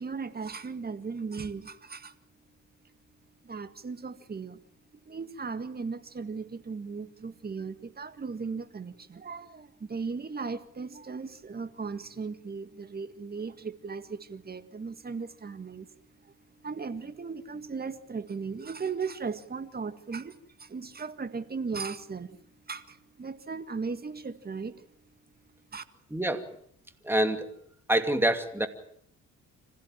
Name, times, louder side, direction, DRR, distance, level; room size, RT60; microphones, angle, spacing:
voice 1, 0.0-2.2 3.4-4.6 4.9-24.8 25.7-25.8, right 5 dB, 30° right, 11 dB, 1.9 m, -37 dB
voice 2, 26.1-26.5 27.0-27.5 27.9-28.7, right 1 dB, 5° right, 8 dB, 2.6 m, -26 dB
26.5 x 15.5 x 9.0 m, 0.68 s
cardioid pair, 90°, 30 cm